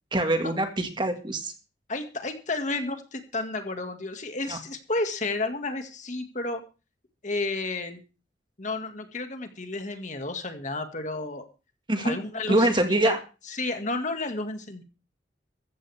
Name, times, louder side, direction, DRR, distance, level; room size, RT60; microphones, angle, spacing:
voice 1, 0.1-1.5 4.5-4.6 11.9-12.1 12.5-13.2, right 1 dB, 25° right, 6 dB, 1.9 m, -24 dB
voice 2, 1.9-6.6 7.2-8.0 8.6-11.5 12.0-13.2 13.5-14.8, left 2 dB, 40° left, 6 dB, 2.0 m, -32 dB
15.5 x 14.5 x 3.5 m, 0.33 s
head